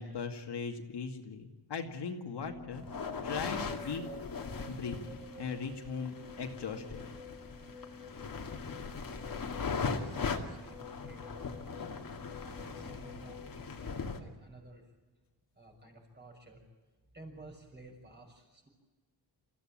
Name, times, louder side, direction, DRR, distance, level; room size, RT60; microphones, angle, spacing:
voice 1, 0.0-2.8 3.2-4.0 4.7-7.0, left 5 dB, 65° left, 3 dB, 2.4 m, -39 dB
sound 1, 2.4-14.5, left 3 dB, ahead, 2.9 m, -50 dB
sound 2, 2.7-14.2, left 5 dB, 50° left, 2.3 m, -40 dB
voice 2, 9.4-14.9 15.5-16.6 17.1-18.7, right 1 dB, 25° right, 2 dB, 6.2 m, -54 dB
28.5 x 15.5 x 8.9 m, 1.3 s
wide cardioid pair, 175°, 43 cm